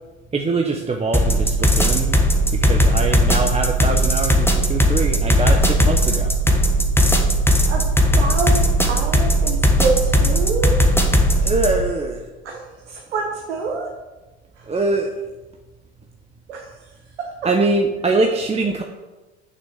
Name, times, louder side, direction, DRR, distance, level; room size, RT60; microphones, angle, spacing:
voice 1, 0.3-2.2 2.5-6.3 11.4-12.2 14.7-15.1 17.4-18.8, right 3 dB, 20° right, 2 dB, 1.0 m, -23 dB
sound 1, 1.1-11.8, equal, 5° left, 1.5 m, -17 dB
voice 2, 7.6-10.8 12.4-13.9 14.6-14.7 16.5-17.5, right 4 dB, 80° right, 0 dB, 1.3 m, -27 dB
6.9 x 6.3 x 6.4 m, 1.1 s
hypercardioid pair, 70°, 34 cm